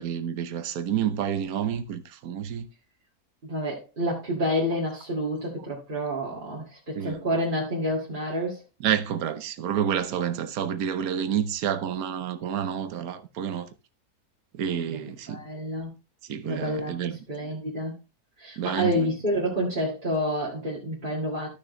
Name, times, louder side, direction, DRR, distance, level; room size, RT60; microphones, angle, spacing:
voice 1, 0.0-2.7 7.0-7.2 8.8-13.7 14.6-15.4 16.3-17.1 18.6-19.1, right 9 dB, 70° right, 1.3 m, -29 dB
voice 2, 3.4-8.6 14.9-15.0 15.3-15.9 16.4-17.0 17.3-18.0 18.4-21.5, equal, 30° right, 2.2 m, -28 dB
13.5 x 6.2 x 3.2 m
omnidirectional pair, 1.6 m